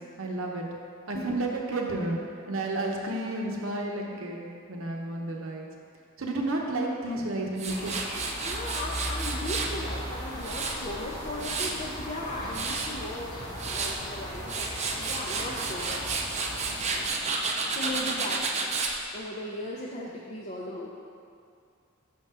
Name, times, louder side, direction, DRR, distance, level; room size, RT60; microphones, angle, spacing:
voice 1, 0.2-0.7 1.1-2.2 2.5-5.7 6.2-7.9 12.4-12.6, right 2 dB, 75° right, 0 dB, 0.8 m, -31 dB
Tools, 7.6-9.7 10.2-11.9 12.3-12.9 13.4-14.0 14.3-18.9, right 4 dB, 35° right, 0.5 m, -31 dB
sound 1, 7.7-17.1, equal, 20° left, 0.9 m, -38 dB
voice 2, 8.4-13.4 13.7-16.2 17.7-18.5 19.1-20.9, left 1 dB, 35° left, -4 dB, 0.5 m, -37 dB
6.0 x 3.6 x 5.5 m, 2.3 s
head